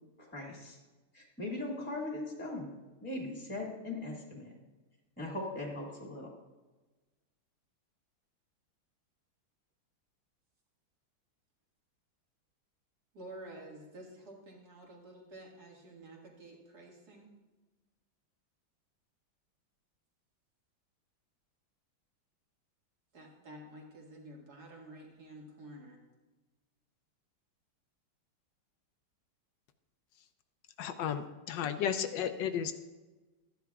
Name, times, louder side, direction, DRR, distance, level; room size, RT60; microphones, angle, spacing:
voice 1, 0.2-0.8 1.1-2.7 3.0-4.5 5.2-6.3, left 2 dB, 5° left, -2 dB, 1.7 m, -39 dB
voice 2, 13.1-17.3 23.1-26.0, right 1 dB, 50° right, -1 dB, 2.3 m, -50 dB
voice 3, 30.8-32.7, left 8 dB, 70° left, 9 dB, 1.2 m, -33 dB
13.5 x 10.5 x 2.4 m, 1.2 s
omnidirectional pair, 2.2 m